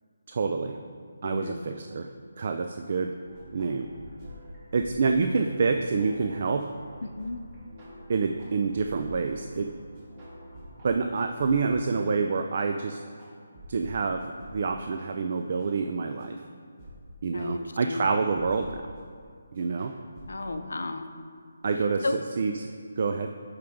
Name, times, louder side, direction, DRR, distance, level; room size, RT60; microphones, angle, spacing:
voice 1, 0.3-0.8 1.2-2.1 2.4-3.1 3.5-3.9 4.7-6.7 8.1-9.7 10.8-13.0 13.7-14.2 14.5-16.4 17.2-18.8 19.5-19.9 21.6-22.1 22.4-22.7 23.0-23.3, right 4 dB, 40° right, 5 dB, 0.3 m, -27 dB
voice 2, 1.2-1.6 7.0-7.4 17.3-18.1 20.3-21.1 22.0-22.2, left 2 dB, 80° left, 7 dB, 0.6 m, -33 dB
sound 1, 3.2-14.0 14.4-14.6 15.0-15.1 15.6-15.7 16.2-16.3 16.8-17.0 17.4-17.5 18.0-18.8 19.2-19.3 19.6-20.5, equal, 25° right, 1.5 m, -47 dB
11.0 x 4.6 x 3.6 m, 2.1 s
hypercardioid pair, 170°, 0 cm